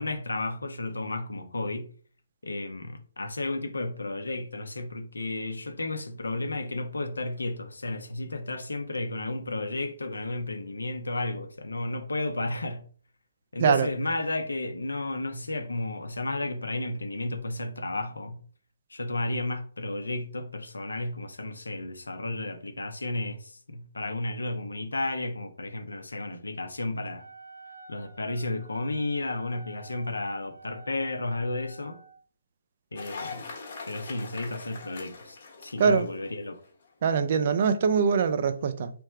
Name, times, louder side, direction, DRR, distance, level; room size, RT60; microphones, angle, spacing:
voice 1, 0.0-1.9 2.4-12.8 13.5-18.4 18.9-27.2 27.9-32.0 32.9-33.4 33.9-36.6, left 2 dB, 70° left, 0.8 m, -33 dB
Wind instrument woodwind instrument, 27.1-32.2, right 3 dB, 80° right, 1.3 m, -50 dB
Cheering / Applause, 33.0-36.7, left 4 dB, 45° left, 1.2 m, -42 dB
voice 2, 37.0-38.9, right 6 dB, 40° right, 0.5 m, -23 dB
3.4 x 3.1 x 4.8 m
figure-of-eight pair, 135°, 0 cm